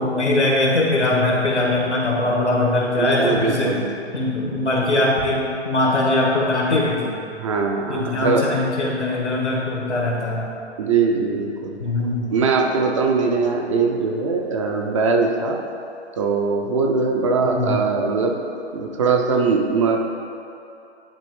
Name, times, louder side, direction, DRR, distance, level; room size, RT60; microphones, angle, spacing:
voice 1, 0.0-3.8 4.1-7.1 7.9-10.5 11.8-12.3 17.4-17.8, left 2 dB, 90° left, -2 dB, 1.6 m, -21 dB
voice 2, 3.0-4.0 7.4-8.5 10.8-11.8 12.3-15.6 16.2-18.4 18.7-20.0, right 4 dB, 30° right, 2 dB, 0.5 m, -21 dB
10.5 x 4.3 x 3.2 m, 2.7 s
figure-of-eight pair, 125°, 34 cm